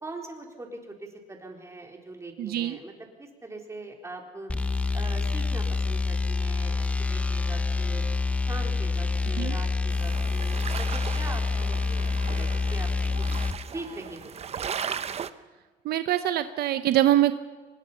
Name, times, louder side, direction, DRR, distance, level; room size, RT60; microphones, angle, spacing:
voice 1, 0.0-2.9 3.2-4.5 4.9-8.0 8.5-12.9 13.2-13.3 13.7-14.7, right 2 dB, 15° right, 2 dB, 4.1 m, -42 dB
voice 2, 2.4-2.8 9.4-9.6 15.8-17.3, right 13 dB, 70° right, 11 dB, 0.9 m, -24 dB
sound 1, 4.5-13.6, left 4 dB, 10° left, 0.8 m, -27 dB
sound 2, 9.9-15.3, right 7 dB, 40° right, 0.9 m, -37 dB
24.0 x 20.5 x 5.7 m, 1.4 s
cardioid pair, 110°, 17 cm